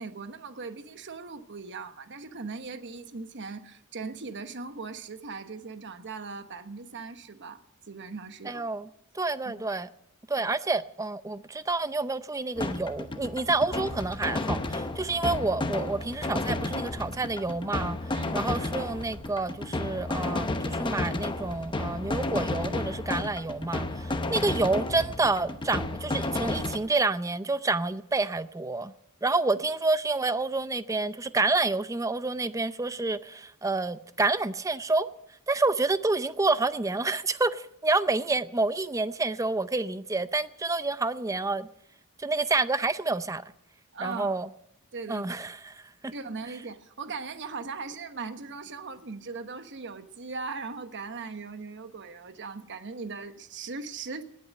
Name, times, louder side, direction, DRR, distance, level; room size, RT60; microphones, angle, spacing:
voice 1, 0.0-7.6 7.9-8.7 9.4-9.6 18.1-18.4 43.9-44.4 44.9-45.5 46.1-54.2, right 4 dB, 55° right, 1.1 m, -39 dB
voice 2, 8.5-8.9 9.1-9.9 10.3-18.0 18.3-28.9 29.2-35.1 35.5-41.7 42.2-43.4 44.0-44.5 45.1-45.6 46.0-46.1, right 3 dB, 15° right, 0.5 m, -28 dB
sound 1, 12.6-26.8, left 2 dB, 20° left, 0.9 m, -32 dB
19.0 x 8.7 x 7.5 m
head